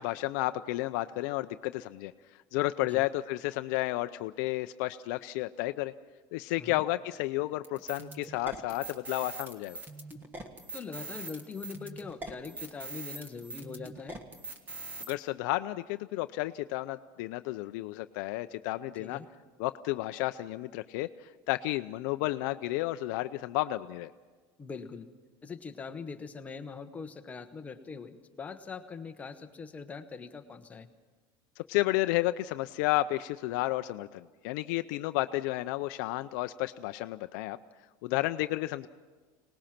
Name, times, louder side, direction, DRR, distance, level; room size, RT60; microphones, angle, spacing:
voice 1, 0.0-2.1 2.5-5.9 6.3-9.8 15.1-19.2 19.6-21.1 21.5-24.1 31.7-37.6 38.0-38.9, left 17 dB, 60° left, 10 dB, 0.5 m, -32 dB
sound 1, 7.6-15.1, right 2 dB, 15° right, 1.6 m, -42 dB
voice 2, 10.7-14.2 19.0-19.3 24.6-25.1 25.4-30.9, left 5 dB, 15° left, 7 dB, 0.9 m, -42 dB
24.5 x 19.5 x 5.9 m, 1.4 s
cardioid pair, 170°, 11 cm